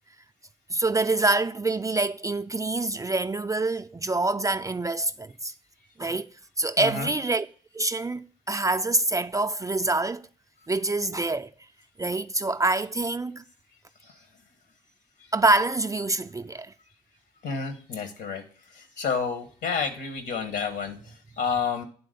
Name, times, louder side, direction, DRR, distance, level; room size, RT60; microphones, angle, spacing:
voice 1, 0.7-5.5 6.0-6.3 6.6-7.5 7.7-10.3 10.7-11.5 12.0-13.4 15.3-16.7, right 2 dB, 20° right, 0.4 m, -26 dB
voice 2, 6.8-7.1 14.0-14.2 17.4-18.4 18.7-21.8, left 5 dB, 70° left, 1.5 m, -30 dB
9.2 x 3.8 x 5.1 m
hypercardioid pair, 50°, 19 cm